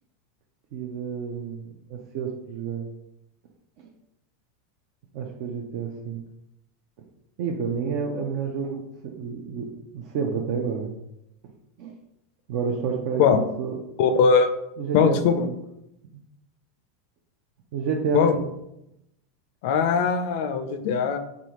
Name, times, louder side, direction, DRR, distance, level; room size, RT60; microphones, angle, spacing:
voice 1, 0.7-2.9 3.8-3.9 5.1-6.2 7.4-10.9 11.8-11.9 12.5-13.8 14.8-15.6 17.7-18.5, right 6 dB, 60° right, 1 dB, 0.4 m, -30 dB
voice 2, 14.0-14.5 14.9-15.5 18.1-18.3 19.6-21.2, left 6 dB, 65° left, 9 dB, 0.4 m, -20 dB
3.4 x 2.5 x 2.9 m, 0.83 s
hypercardioid pair, 105°, 0 cm